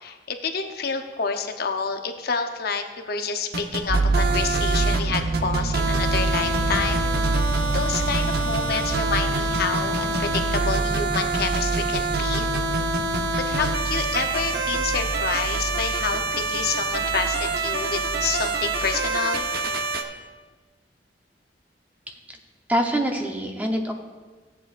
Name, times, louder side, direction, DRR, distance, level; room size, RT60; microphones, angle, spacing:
voice 1, 0.0-7.1 7.7-12.5 13.5-19.5, left 5 dB, 60° left, 5 dB, 0.7 m, -28 dB
sound 1, 3.5-20.0, right 3 dB, 60° right, 0.9 m, -26 dB
sound 2, 3.9-19.2, right 3 dB, 45° right, 0.5 m, -28 dB
voice 2, 22.1-22.4 22.7-23.9, equal, 10° right, 2 dB, 0.8 m, -25 dB
16.0 x 8.3 x 2.5 m, 1.3 s
head